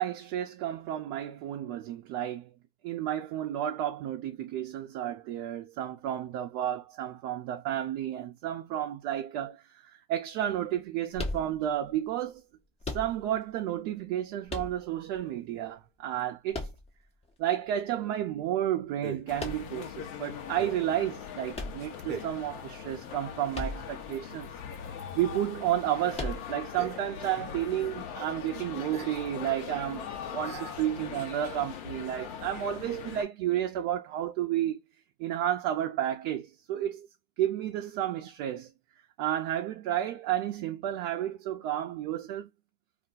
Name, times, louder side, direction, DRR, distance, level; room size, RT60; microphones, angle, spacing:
voice 1, 0.0-2.5 2.8-12.4 12.9-16.7 17.4-24.5 25.1-34.8 35.2-37.1 37.4-38.7 39.2-42.5, right 11 dB, 55° right, 0.6 m, -32 dB
sound 1, 11.1-11.9 12.8-13.5 14.5-15.2 16.5-17.3 19.4-19.9 21.5-22.4 23.5-24.1 24.4-24.5 26.1-26.8, left 2 dB, 15° left, 0.7 m, -37 dB
sound 2, 16.2-16.3 19.0-19.4 20.6-20.9 22.0-22.4 24.1-25.3 25.7-25.8 26.0-27.3 27.6-27.9 28.5-28.6 28.9-29.3 29.6-29.7 30.4-30.9, right 6 dB, 25° right, 0.8 m, -42 dB
sound 3, 19.3-33.2, left 8 dB, 70° left, 0.9 m, -41 dB
2.5 x 2.2 x 3.8 m
hypercardioid pair, 95°, 44 cm